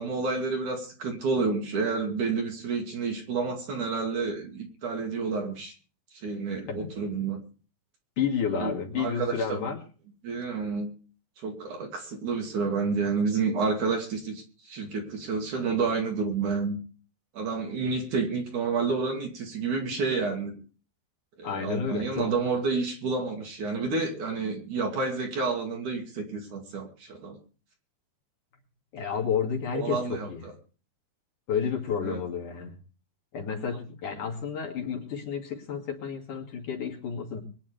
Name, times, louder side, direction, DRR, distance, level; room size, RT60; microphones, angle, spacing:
voice 1, 0.0-5.7 6.1-7.4 8.6-8.7 9.0-9.6 10.2-10.9 11.4-16.8 17.3-20.5 21.4-27.4 29.7-30.3 32.0-32.2 33.7-33.8, right 4 dB, 50° right, 2 dB, 3.6 m, -29 dB
voice 2, 8.2-9.8 21.4-22.3 28.9-30.5 31.5-32.8 33.3-37.4, left 7 dB, 55° left, 0 dB, 3.6 m, -31 dB
23.5 x 10.5 x 3.4 m, 0.38 s
omnidirectional pair, 4.6 m